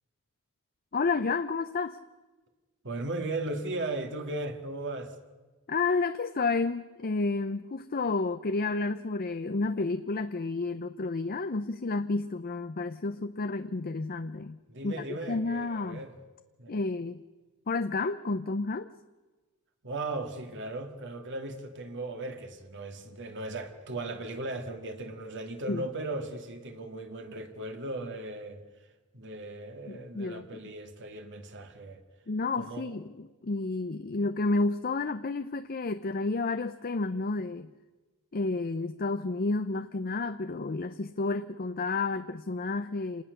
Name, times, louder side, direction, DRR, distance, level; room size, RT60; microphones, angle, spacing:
voice 1, 0.9-2.0 5.7-14.6 14.8-16.0 16.7-17.2 17.7-18.9 25.7-25.8 29.9-30.5 32.3-37.7 38.3-43.2, left 3 dB, 40° left, 0.6 m, -31 dB
voice 2, 2.8-5.2 14.7-16.1 16.6-16.8 19.8-28.6 29.1-32.0 32.5-33.0, right 2 dB, 55° right, 2.3 m, -37 dB
27.5 x 19.5 x 6.7 m
head